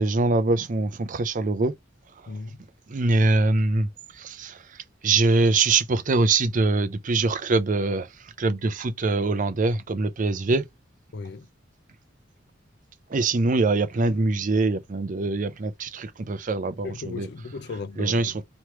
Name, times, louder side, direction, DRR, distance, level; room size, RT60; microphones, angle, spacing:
voice 1, 0.0-1.7 2.9-10.7 13.1-17.3 18.0-18.4, right 3 dB, 45° right, 0.5 m, -23 dB
voice 2, 2.3-2.6 11.1-11.5 16.8-18.3, left 4 dB, 60° left, 0.4 m, -36 dB
3.1 x 3.0 x 4.5 m
head